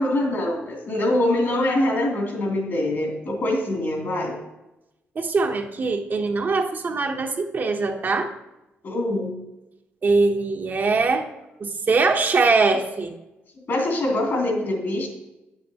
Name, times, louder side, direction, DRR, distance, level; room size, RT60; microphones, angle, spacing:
voice 1, 0.0-4.4 8.8-9.4 13.7-15.1, left 1 dB, 55° left, 0 dB, 2.8 m, -24 dB
voice 2, 5.2-8.3 10.0-11.3 11.6-13.1, right 3 dB, 45° right, 3 dB, 0.9 m, -22 dB
8.5 x 7.7 x 2.9 m, 0.96 s
cardioid pair, 80°, 4 cm